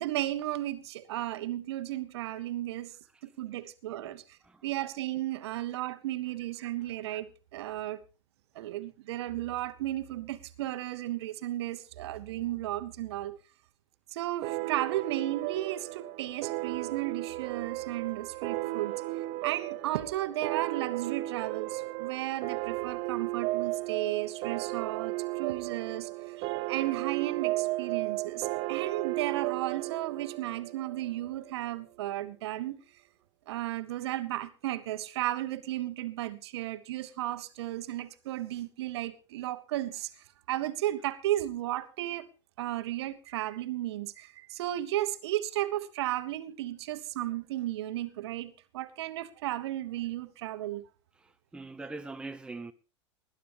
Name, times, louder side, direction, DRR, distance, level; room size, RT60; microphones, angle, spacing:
voice 1, 0.0-3.0 3.2-8.0 8.5-13.3 14.1-19.0 19.4-32.8 33.5-42.3 42.6-50.8, right 14 dB, 55° right, 1.2 m, -34 dB
sound 1, 14.4-31.5, right 20 dB, 40° right, 0.6 m, -34 dB
voice 2, 51.2-52.7, right 3 dB, 5° right, 0.8 m, -42 dB
20.0 x 11.5 x 3.5 m
figure-of-eight pair, 85°, 16 cm